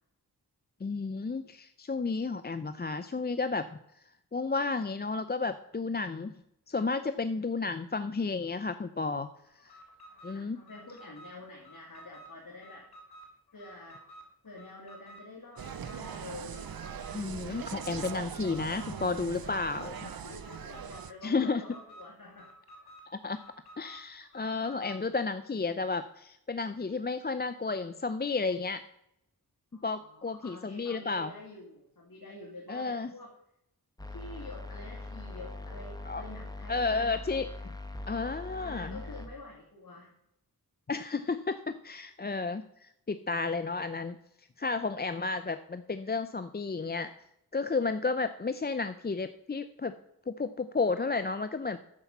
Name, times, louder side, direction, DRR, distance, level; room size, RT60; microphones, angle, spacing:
voice 1, 0.8-3.8 4.3-6.3 6.7-9.3 9.6-9.8 10.2-10.6 17.1-20.0 21.2-21.6 23.1-23.4 23.8-28.8 29.8-31.3 32.7-33.1 36.1-36.2 36.7-37.7 38.1-39.0 40.9-47.1 47.5-49.9 50.3-51.8, left 4 dB, 25° left, 11 dB, 0.5 m, -32 dB
Alarm, 9.6-25.1, right 1 dB, 70° left, 3.6 m, -53 dB
voice 2, 10.1-12.8 13.5-14.0 14.4-16.7 20.0-22.5 29.7-33.3 34.1-37.0 38.6-40.1, left 2 dB, 55° left, -4 dB, 2.5 m, -48 dB
Insect, 15.6-21.1, right 8 dB, 65° right, 0.6 m, -41 dB
sound 1, 34.0-39.3, left 2 dB, 10° left, 1.2 m, -42 dB
9.8 x 7.2 x 5.5 m, 0.81 s
wide cardioid pair, 50°, 39 cm